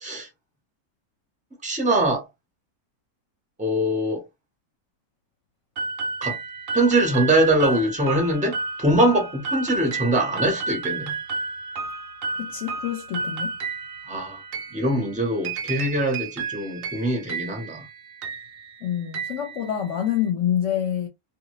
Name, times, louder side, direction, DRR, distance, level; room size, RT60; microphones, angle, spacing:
voice 1, 1.6-2.3 3.6-4.2 6.2-6.4 6.7-11.1 14.1-14.4 14.7-17.8, right 1 dB, 5° right, 0.9 m, -23 dB
sound 1, 5.8-20.2, right 4 dB, 65° right, 1.0 m, -32 dB
voice 2, 12.4-13.6 18.8-21.1, left 10 dB, 60° left, 0.9 m, -26 dB
2.6 x 2.5 x 3.1 m
omnidirectional pair, 1.6 m